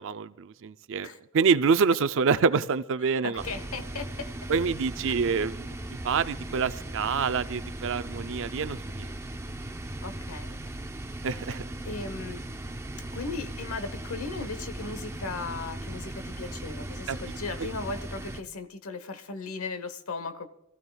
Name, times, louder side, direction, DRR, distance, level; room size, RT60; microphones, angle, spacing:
voice 1, 0.0-3.4 4.5-5.8 6.0-9.1 11.2-11.6 17.1-17.2 17.6-17.7, right 5 dB, 60° right, 12 dB, 0.5 m, -26 dB
voice 2, 3.0-4.3 10.0-10.9 11.3-11.5 11.8-12.4 13.1-20.5, left 4 dB, 75° left, 11 dB, 1.1 m, -37 dB
sound 1, 3.4-18.4, right 1 dB, 15° right, 0.6 m, -38 dB
25.5 x 14.5 x 2.3 m, 0.89 s
head